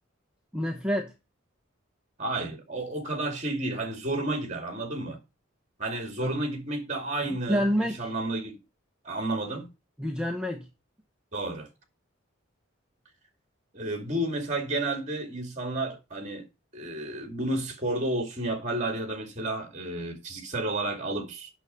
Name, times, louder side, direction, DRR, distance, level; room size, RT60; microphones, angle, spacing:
voice 1, 0.5-1.1 6.2-6.4 7.3-8.1 10.0-10.6, equal, 5° right, 0.9 m, -28 dB
voice 2, 2.2-5.2 5.8-8.6 9.0-9.7 11.3-11.7 13.7-16.5 16.7-21.5, right 2 dB, 35° right, 2.4 m, -31 dB
9.0 x 6.4 x 5.4 m
head